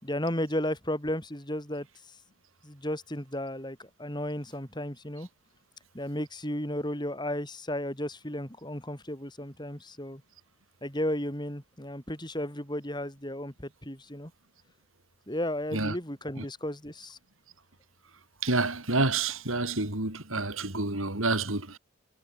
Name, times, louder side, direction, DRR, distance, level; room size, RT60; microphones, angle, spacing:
voice 1, 0.0-1.9 2.6-5.3 5.9-10.2 10.8-14.3 15.3-17.2, left 1 dB, 20° left, 7.1 m, -34 dB
voice 2, 18.4-21.8, right 3 dB, 85° right, 4.4 m, -28 dB
head